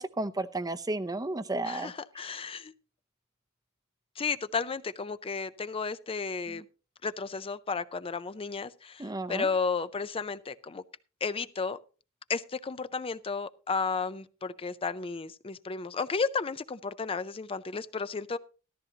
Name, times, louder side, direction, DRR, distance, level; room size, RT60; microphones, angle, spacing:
voice 1, 0.0-2.2 6.5-6.6 9.0-9.5, right 2 dB, 15° right, 0.7 m, -33 dB
voice 2, 1.7-2.7 4.2-6.6 7.0-10.8 11.2-11.8 12.3-18.4, left 4 dB, 25° left, 0.5 m, -33 dB
14.0 x 14.0 x 2.8 m
head